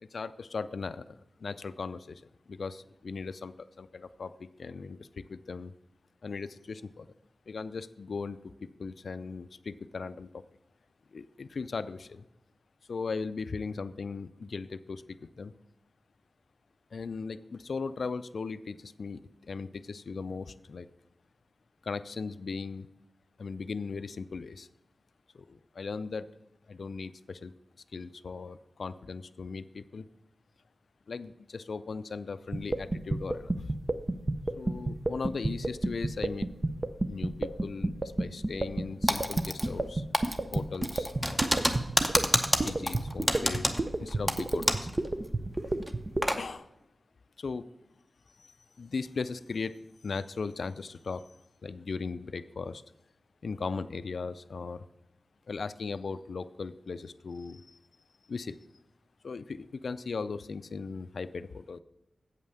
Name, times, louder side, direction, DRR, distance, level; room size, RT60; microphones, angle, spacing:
voice 1, 0.0-2.2 2.5-5.7 6.2-7.1 7.5-8.5 8.8-10.4 11.1-12.2 12.9-15.5 16.9-20.9 21.8-22.9 23.4-24.7 25.3-26.3 26.7-27.5 27.9-30.0 31.1-33.7 34.5-36.5 37.1-40.1 40.5-41.6 42.6-44.9 46.4-46.7 47.4-47.7 48.4-51.3 51.6-52.8 53.4-54.8 55.5-57.8 58.3-58.6 59.2-61.8, left 4 dB, 70° left, 13 dB, 0.4 m, -38 dB
sound 1, 32.5-46.3, right 2 dB, 35° right, 0.5 m, -29 dB
Typing, 39.1-39.9 40.1-45.0 45.2-45.3 45.8-46.4, equal, 5° right, 0.8 m, -28 dB
8.1 x 5.5 x 6.6 m, 0.90 s
wide cardioid pair, 75°, 0 cm